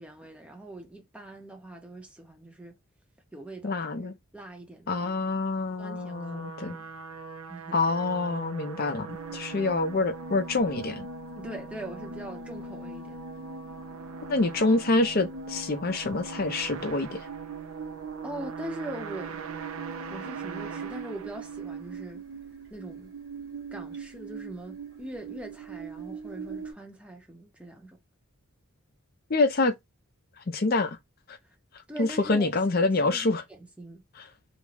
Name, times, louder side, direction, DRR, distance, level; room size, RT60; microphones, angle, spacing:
voice 1, 0.0-2.8 3.3-5.3 5.8-6.9 7.5-7.8 11.4-13.2 18.2-19.4 20.1-22.2 22.7-23.1 23.7-28.0 31.4-31.5 31.9-34.0, right 1 dB, 5° right, 0.6 m, -42 dB
voice 2, 3.6-4.2 4.9-6.8 7.7-11.1 14.3-17.2 29.3-29.7 30.5-31.0 31.3-31.4 32.0-33.4 34.2-34.3, left 3 dB, 45° left, 0.5 m, -26 dB
sound 1, 5.7-22.0, right 5 dB, 75° right, 0.5 m, -42 dB
sound 2, 9.1-26.7, right 4 dB, 50° right, 1.1 m, -41 dB
2.4 x 2.2 x 3.2 m
head